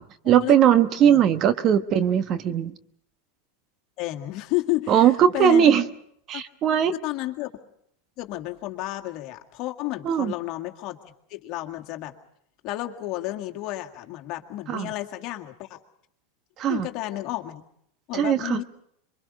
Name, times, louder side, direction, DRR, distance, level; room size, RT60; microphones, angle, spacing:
voice 1, 0.0-2.8 4.9-5.8 6.3-6.9 10.0-10.3 14.7-14.9 16.6-16.9 18.1-18.6, right 9 dB, 40° right, 11 dB, 1.1 m, -19 dB
voice 2, 4.0-5.8 6.3-6.4 7.0-7.5 8.2-12.1 12.6-15.8 16.7-17.6 18.1-18.6, left 17 dB, 50° left, 4 dB, 1.9 m, -31 dB
26.5 x 23.5 x 5.3 m, 0.71 s
hypercardioid pair, 105°, 0 cm